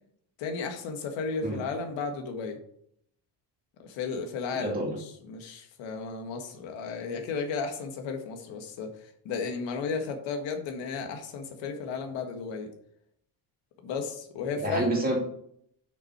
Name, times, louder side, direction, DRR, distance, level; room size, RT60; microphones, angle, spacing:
voice 1, 0.4-2.6 3.8-8.9 9.3-12.7 13.8-14.9, left 5 dB, 80° left, 4 dB, 1.7 m, -34 dB
voice 2, 4.5-5.0 14.6-15.2, right 2 dB, 20° right, -1 dB, 2.3 m, -28 dB
7.2 x 6.1 x 4.7 m, 0.69 s
cardioid pair, 180°, 44 cm